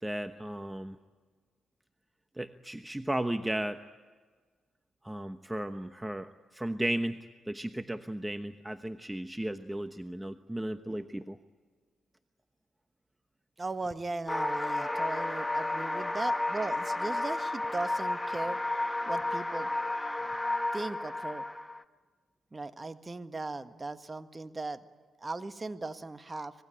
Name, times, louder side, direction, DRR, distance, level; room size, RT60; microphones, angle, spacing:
voice 1, 0.0-1.0 2.4-3.8 5.0-11.4, right 1 dB, 10° right, 10 dB, 1.1 m, -35 dB
voice 2, 13.6-18.6 19.1-19.7 20.7-21.4 22.5-24.8 25.2-26.5, right 3 dB, 30° right, 10 dB, 1.6 m, -37 dB
sound 1, 14.3-21.8, left 2 dB, 10° left, 1.4 m, -32 dB
25.5 x 20.5 x 9.1 m, 1.5 s
hypercardioid pair, 45°, 0 cm